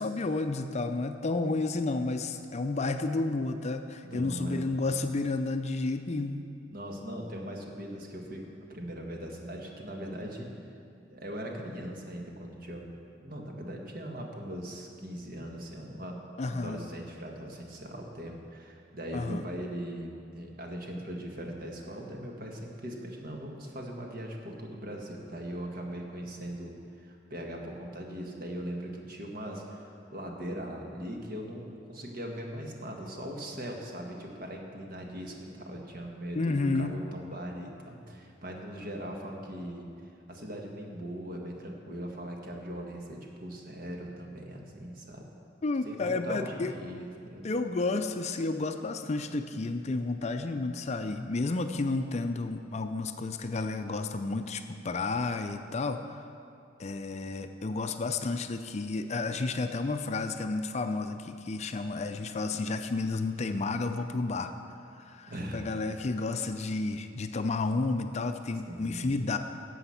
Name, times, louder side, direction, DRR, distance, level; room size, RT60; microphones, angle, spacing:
voice 1, 0.0-6.5 16.4-16.8 19.1-19.4 36.3-37.0 45.6-46.7 47.4-56.2 56.8-64.5 65.0-69.4, left 3 dB, 35° left, 8 dB, 0.4 m, -31 dB
voice 2, 4.0-4.7 6.7-10.5 11.1-12.9 13.2-39.8 40.3-45.3 45.8-47.4 65.3-65.6 68.7-69.2, equal, 50° right, 1 dB, 1.5 m, -40 dB
12.5 x 7.9 x 5.7 m, 2.5 s
head